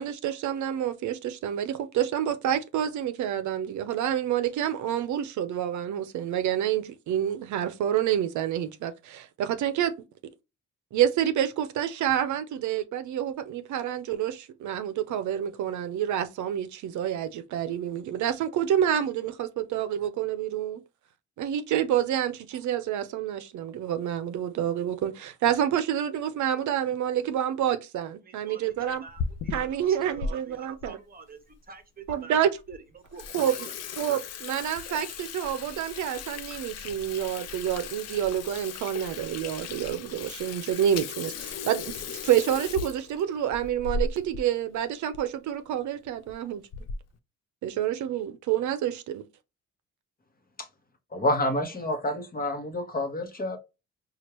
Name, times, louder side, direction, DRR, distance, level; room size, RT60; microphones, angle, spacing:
voice 1, 0.0-9.9 10.9-20.8 21.4-29.0 29.5-31.0 32.1-32.5 33.3-33.7 34.0-46.6 47.6-49.2, right 10 dB, 75° right, 0.6 m, -28 dB
voice 2, 28.2-28.7 29.0-32.4 32.7-33.7, right 5 dB, 30° right, 0.9 m, -47 dB
Water tap faucet / Sink (filling or washing), 28.9-30.3 30.8-30.9 31.6-31.7 32.1-32.2 32.6-32.8 33.0-44.5 44.8-44.9 45.1-45.3 46.0-46.3 46.7-47.1, left 5 dB, 55° left, 0.6 m, -36 dB
voice 3, 51.1-53.6, left 1 dB, 30° left, 1.0 m, -28 dB
4.4 x 2.4 x 2.9 m
cardioid pair, 90°, 30 cm